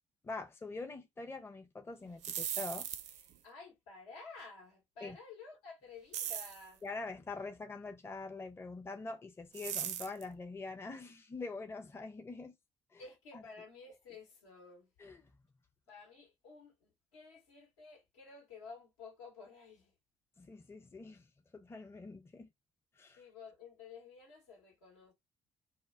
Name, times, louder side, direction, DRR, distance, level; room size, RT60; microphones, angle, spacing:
voice 1, 0.2-2.9 5.0-5.2 6.8-12.6 12.9-13.0 15.0-15.2 20.4-21.3 21.5-22.5 23.0-23.2, left 3 dB, 15° left, 0.5 m, -44 dB
sound 1, 2.1-3.3 6.1-6.6 9.5-10.2, right 10 dB, 55° right, 0.4 m, -39 dB
voice 2, 3.4-6.8 13.0-14.9 15.9-19.9 23.2-25.1, left 4 dB, 80° left, 0.9 m, -53 dB
2.1 x 2.1 x 3.6 m
figure-of-eight pair, 50°, 15 cm